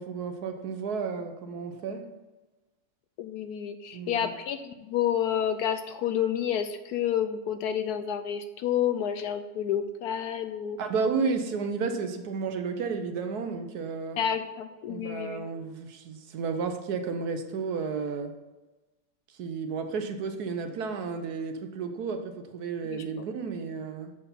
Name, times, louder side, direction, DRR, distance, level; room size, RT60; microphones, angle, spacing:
voice 1, 0.0-2.1 3.9-4.3 10.8-14.2 14.9-18.3 19.4-24.1, right 5 dB, 65° right, 1.2 m, -32 dB
voice 2, 3.2-10.8 14.2-15.4 22.9-23.3, left 9 dB, 70° left, 1.0 m, -29 dB
6.7 x 6.2 x 5.6 m
omnidirectional pair, 1.9 m